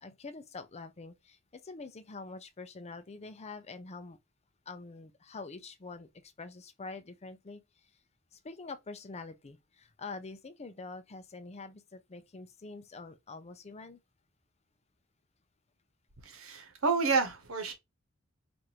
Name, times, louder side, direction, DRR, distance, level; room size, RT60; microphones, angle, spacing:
voice 1, 0.0-4.2 4.7-7.6 8.3-14.0, left 3 dB, 30° left, 0.5 m, -45 dB
voice 2, 16.2-17.7, right 4 dB, 75° right, 1.1 m, -29 dB
4.7 x 2.6 x 2.8 m
head